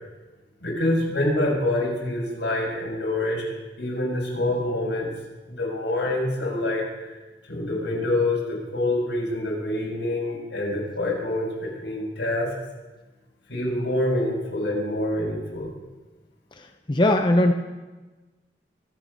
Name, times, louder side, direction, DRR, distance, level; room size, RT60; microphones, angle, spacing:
voice 1, 0.6-3.4 3.8-5.1 5.5-7.1 7.5-12.5 13.5-15.7, left 1 dB, 80° left, -3 dB, 6.3 m, -26 dB
voice 2, 16.6-17.5, left 1 dB, 25° left, 5 dB, 0.7 m, -20 dB
24.0 x 9.2 x 5.4 m, 1.2 s
head